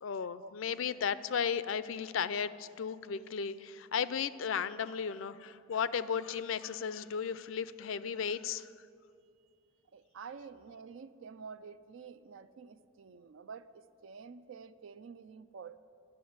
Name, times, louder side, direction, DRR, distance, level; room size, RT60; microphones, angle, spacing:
voice 1, 0.0-8.7, left 7 dB, 80° left, 0.4 m, -35 dB
voice 2, 9.9-15.8, right 5 dB, 75° right, 0.4 m, -49 dB
12.5 x 7.1 x 9.3 m
head